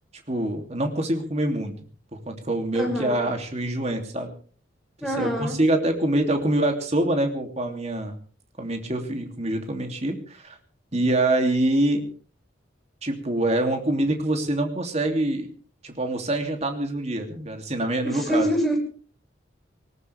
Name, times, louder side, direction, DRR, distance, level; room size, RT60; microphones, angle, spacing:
voice 1, 0.3-1.8 2.3-4.3 5.2-8.1 8.6-10.6 10.9-12.0 13.0-15.5 15.8-18.5, right 1 dB, 35° right, 4 dB, 2.9 m, -25 dB
voice 2, 2.7-3.2 5.0-5.6 18.0-18.8, equal, ahead, 1 dB, 6.2 m, -25 dB
19.5 x 19.5 x 3.5 m, 0.42 s
head